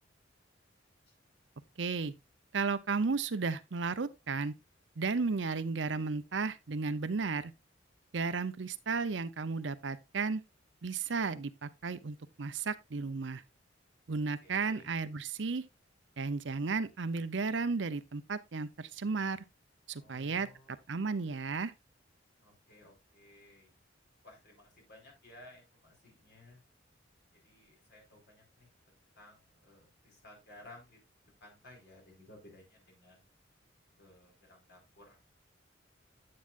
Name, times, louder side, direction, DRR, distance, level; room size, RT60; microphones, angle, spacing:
voice 1, 1.8-2.1 2.5-4.5 5.0-7.5 8.1-10.4 10.8-13.4 14.1-15.6 16.2-19.4 19.9-20.5 20.9-21.7, right 4 dB, 70° right, 0.7 m, -34 dB
voice 2, 14.4-14.9 19.9-20.7 22.4-23.7 24.2-26.6 27.3-31.0 31.4-33.2 34.0-35.2, left 1 dB, 60° left, 4.7 m, -57 dB
9.4 x 8.6 x 2.5 m
head